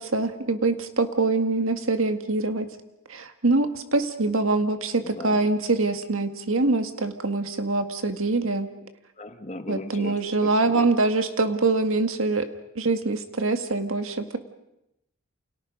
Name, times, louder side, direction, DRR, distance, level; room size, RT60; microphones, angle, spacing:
voice 1, 0.1-2.7 3.1-8.7 9.7-12.5 12.8-14.4, right 3 dB, 65° right, 8 dB, 1.8 m, -24 dB
voice 2, 5.0-5.4 9.2-10.9, left 1 dB, 35° left, 8 dB, 1.6 m, -37 dB
29.5 x 28.0 x 5.3 m, 0.86 s
head